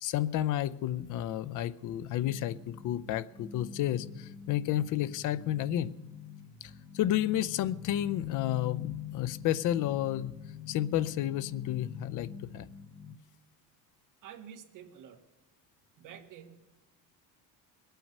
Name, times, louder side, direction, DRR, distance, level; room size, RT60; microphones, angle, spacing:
voice 1, 0.0-5.9 6.6-10.3 10.7-12.7, left 12 dB, 55° left, 15 dB, 0.6 m, -31 dB
sound 1, 1.9-13.2, left 8 dB, 5° left, 0.6 m, -45 dB
voice 2, 14.2-15.2 16.0-16.7, right 8 dB, 55° right, 3 dB, 1.7 m, -49 dB
22.0 x 9.1 x 5.4 m, 1.1 s
cardioid pair, 165°, 38 cm